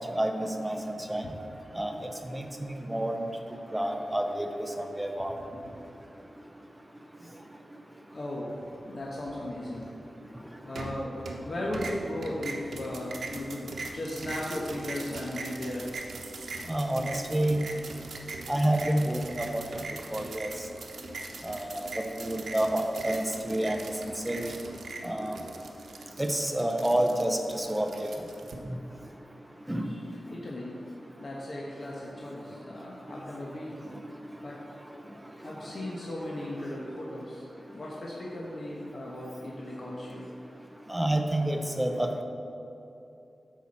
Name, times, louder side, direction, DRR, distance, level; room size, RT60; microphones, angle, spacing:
voice 1, 0.1-0.8 1.1-1.2 1.8-1.9 2.3-2.4 2.9-3.2 3.7-4.5 5.0-5.3 16.7-17.6 18.5-19.6 20.1-20.5 21.4-21.9 22.2-23.8 24.3-24.5 25.0-25.4 26.2-28.1 29.7-29.8 40.9-42.2, right 1 dB, 10° right, 4 dB, 0.6 m, -28 dB
voice 2, 5.3-5.7 8.1-8.5 8.8-9.9 10.6-11.1 11.4-15.9 20.9-21.2 29.8-30.7 31.2-33.8 34.4-34.6 35.4-37.4 37.7-40.3, left 1 dB, 40° left, -4 dB, 1.1 m, -37 dB
sound 1, 10.8-11.5 11.7-28.5, right 3 dB, 90° right, 0.9 m, -41 dB
10.0 x 7.1 x 4.2 m, 2.8 s
wide cardioid pair, 165°, 0 cm